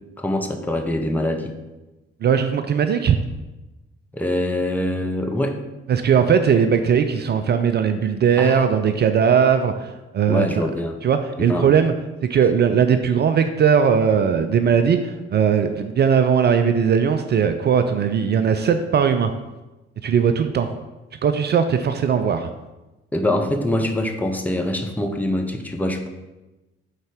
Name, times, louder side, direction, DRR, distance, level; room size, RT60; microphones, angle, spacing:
voice 1, 0.2-1.5 4.1-5.6 8.4-8.6 10.3-11.0 11.4-11.7 23.1-26.1, left 1 dB, 5° left, 4 dB, 0.7 m, -24 dB
voice 2, 2.2-3.2 5.9-10.6 11.0-11.9 12.3-19.3 20.0-20.7 21.2-22.5, right 7 dB, 35° right, 8 dB, 0.4 m, -19 dB
5.3 x 3.9 x 4.9 m, 1.1 s
figure-of-eight pair, 40°, 33 cm